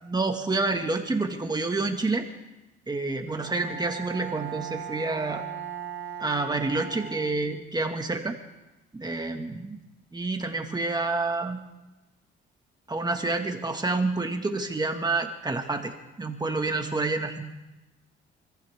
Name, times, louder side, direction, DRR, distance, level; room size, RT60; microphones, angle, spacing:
voice 1, 0.1-2.3 2.9-5.5 6.2-8.4 8.9-9.8 10.1-11.6 12.9-17.4, right 3 dB, 20° right, 4 dB, 2.0 m, -28 dB
Bowed string instrument, 3.3-7.8, right 9 dB, 80° right, 4.5 m, -38 dB
26.0 x 15.0 x 3.7 m, 1.0 s
cardioid pair, 90°, 20 cm